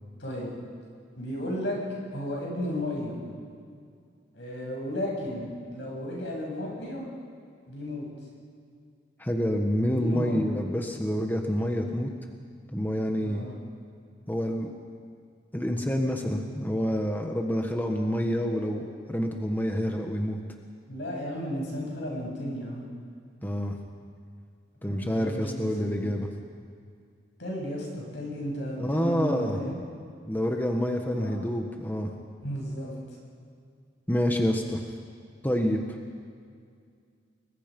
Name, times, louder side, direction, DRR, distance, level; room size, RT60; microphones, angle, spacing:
voice 1, 0.2-0.5 1.2-1.8 2.1-3.2 4.3-7.0 7.7-8.0 9.9-10.4 13.2-13.5 20.9-22.9 24.8-25.9 27.4-29.8 31.1-31.5 32.4-32.9, equal, 75° left, -2 dB, 8.0 m, -34 dB
voice 2, 9.2-12.1 12.7-13.4 14.3-14.7 15.5-20.4 23.4-23.8 24.8-26.3 28.8-29.6 30.3-32.1 34.1-34.8 35.4-35.8, equal, 10° left, 2 dB, 1.4 m, -27 dB
30.0 x 21.0 x 5.4 m, 2.2 s
head